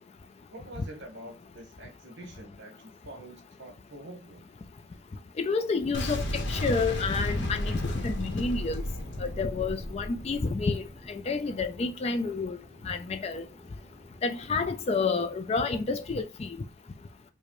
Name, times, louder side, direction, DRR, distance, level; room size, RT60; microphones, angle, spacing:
voice 1, 0.5-4.5, right 1 dB, 55° right, 1.1 m, -46 dB
voice 2, 5.4-8.8 9.2-12.6 12.8-13.4 14.2-16.5, left 4 dB, 30° left, 0.3 m, -29 dB
Boom, 5.9-10.9, left 1 dB, 55° left, 0.8 m, -33 dB
sound 1, 6.5-15.5, equal, 15° right, 1.2 m, -51 dB
4.9 x 2.1 x 3.0 m
head